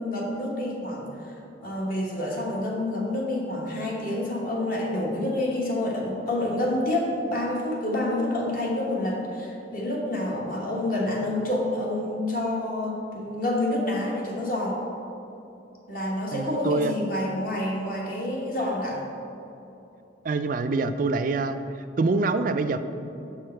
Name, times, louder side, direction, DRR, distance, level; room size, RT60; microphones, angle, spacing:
voice 1, 0.0-1.3 1.6-14.8 15.9-19.0, left 1 dB, 45° left, -3 dB, 1.2 m, -28 dB
voice 2, 16.3-16.9 20.2-21.6 22.0-22.8, right 3 dB, 45° right, 9 dB, 0.3 m, -25 dB
6.4 x 5.8 x 4.4 m, 2.9 s
head